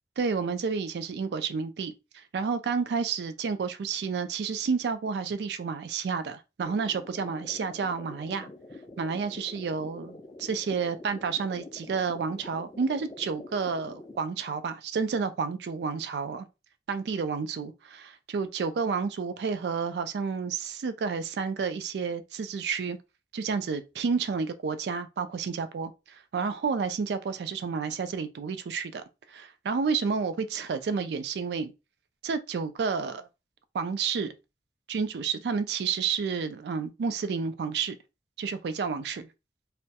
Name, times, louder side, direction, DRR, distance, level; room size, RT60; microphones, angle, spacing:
voice 1, 0.2-8.5 9.0-16.5 16.9-23.0 23.3-31.7 32.2-33.3 33.7-34.3 34.9-38.0 38.4-39.3, right 5 dB, 75° right, 0.3 m, -30 dB
sound 1, 6.7-14.2, left 2 dB, 20° left, 0.3 m, -46 dB
2.2 x 2.1 x 2.7 m
head